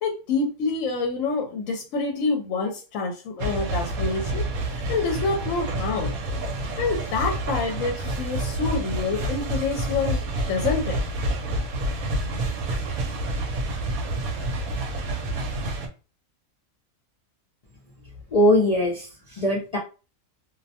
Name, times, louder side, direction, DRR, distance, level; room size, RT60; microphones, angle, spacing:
voice 1, 0.0-4.4 4.7-6.1 6.8-10.2 10.5-11.0, left 4 dB, 70° left, 2 dB, 0.9 m, -27 dB
sound 1, 3.4-15.9, right 1 dB, 85° right, 1.0 m, -28 dB
voice 2, 18.3-19.8, left 1 dB, 55° left, -2 dB, 0.4 m, -21 dB
2.5 x 2.1 x 2.7 m, 0.33 s
omnidirectional pair, 1.5 m